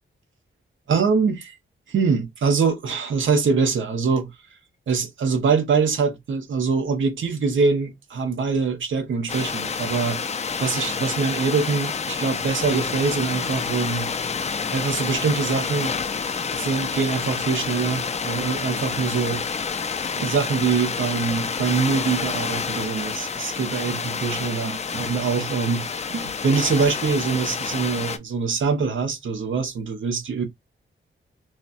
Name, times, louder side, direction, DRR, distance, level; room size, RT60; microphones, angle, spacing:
voice 1, 0.9-1.5 1.9-4.3 4.9-10.2 10.6-14.1 14.7-16.0 16.5-19.5 20.2-25.8 26.1-30.4, right 5 dB, 70° right, 0.9 m, -24 dB
sound 1, 9.3-28.2, left 5 dB, 35° left, 0.4 m, -28 dB
4.0 x 2.1 x 2.4 m
wide cardioid pair, 165°, 21 cm